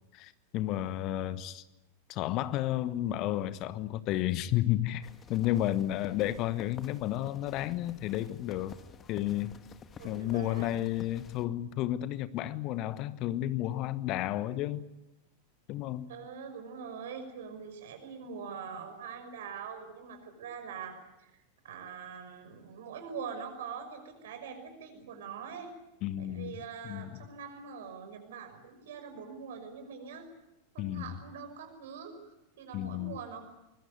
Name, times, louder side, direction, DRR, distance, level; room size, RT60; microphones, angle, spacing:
voice 1, 0.1-1.6 2.1-8.8 9.1-9.5 10.0-14.9 15.7-16.1 26.0-27.2 30.8-31.2 32.7-33.2, left 14 dB, 40° left, 1.2 m, -32 dB
sound 1, 5.0-11.4, left 6 dB, 25° left, 1.8 m, -51 dB
voice 2, 10.0-10.7 16.1-25.7 26.2-30.3 30.7-33.5, right 6 dB, 60° right, 5.9 m, -43 dB
24.5 x 22.0 x 9.6 m
figure-of-eight pair, 90°, 0 cm